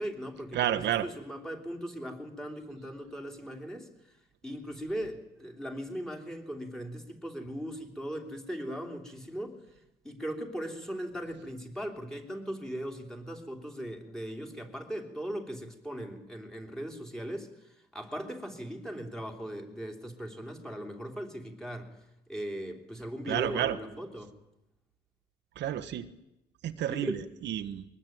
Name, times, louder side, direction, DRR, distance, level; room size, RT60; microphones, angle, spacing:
voice 1, 0.0-4.1 4.4-9.6 10.0-22.0 22.3-24.3 26.9-27.2, equal, 5° left, 2 dB, 3.2 m, -39 dB
voice 2, 0.5-1.1 23.3-23.8 25.6-26.1 26.6-27.8, right 11 dB, 70° right, 8 dB, 1.3 m, -30 dB
23.0 x 19.5 x 9.3 m, 0.90 s
cardioid pair, 155°, 19 cm